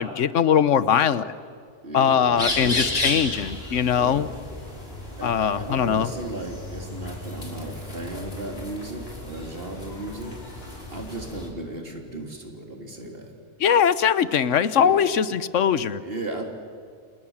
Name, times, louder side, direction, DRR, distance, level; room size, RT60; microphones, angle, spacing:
voice 1, 0.0-1.3 1.9-4.3 5.2-6.1 13.6-16.0, left 8 dB, 85° left, 15 dB, 1.3 m, -21 dB
voice 2, 1.8-3.2 3.9-4.3 4.6-4.9 5.2-10.3 10.9-13.3 14.2-14.3 14.5-15.0 16.0-16.4, right 1 dB, 50° right, 3 dB, 3.5 m, -35 dB
sound 1, 2.4-11.5, left 1 dB, 55° left, 4.8 m, -33 dB
29.0 x 28.0 x 7.3 m, 2.2 s
omnidirectional pair, 1.2 m